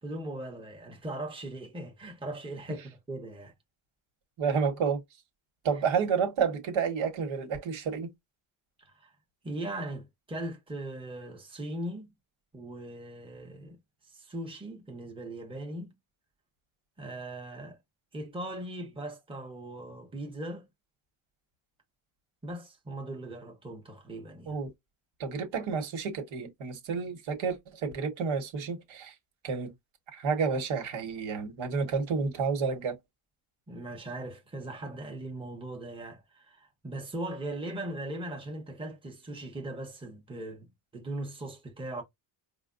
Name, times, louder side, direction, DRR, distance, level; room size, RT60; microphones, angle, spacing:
voice 1, 0.0-3.5 8.8-9.1 9.4-12.1 12.5-13.8 14.1-15.9 17.0-17.8 18.1-20.7 22.4-24.6 33.7-42.0, right 1 dB, 10° right, 1.0 m, -39 dB
voice 2, 4.4-5.0 5.6-8.1 24.5-24.7 25.2-29.1 29.4-29.7 30.1-33.0, right 5 dB, 80° right, 1.4 m, -30 dB
4.9 x 2.2 x 2.5 m
cardioid pair, 120°, 47 cm